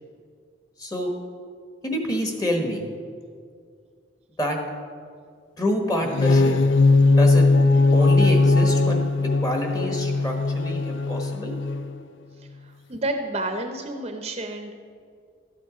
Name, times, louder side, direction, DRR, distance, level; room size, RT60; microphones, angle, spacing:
voice 1, 0.8-1.1 1.8-2.9 4.4-4.6 5.6-6.5 7.2-7.5 7.9-9.0 9.4-11.6, left 1 dB, 20° left, 2 dB, 1.2 m, -27 dB
sound 1, 6.0-12.0, left 3 dB, 75° left, 0.4 m, -19 dB
voice 2, 12.4-14.7, right 2 dB, 30° right, 5 dB, 0.7 m, -30 dB
12.5 x 7.9 x 5.0 m, 2.2 s
head